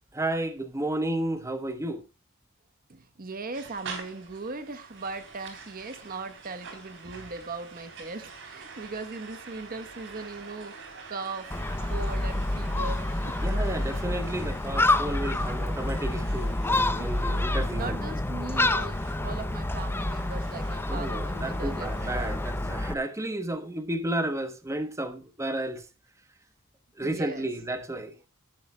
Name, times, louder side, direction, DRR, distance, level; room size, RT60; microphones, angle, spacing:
voice 1, 0.1-2.0 13.4-18.0 20.9-25.8 27.0-28.1, right 1 dB, 15° right, 1.0 m, -32 dB
voice 2, 2.9-10.7 11.1-11.5 11.9-13.3 16.8-17.1 17.7-22.4 27.0-27.5, right 3 dB, 40° right, 1.0 m, -39 dB
sound 1, 3.5-22.7, right 4 dB, 60° right, 3.5 m, -47 dB
Gull seagull, 11.5-22.9, left 1 dB, 10° left, 0.6 m, -28 dB
17.0 x 11.0 x 2.2 m
head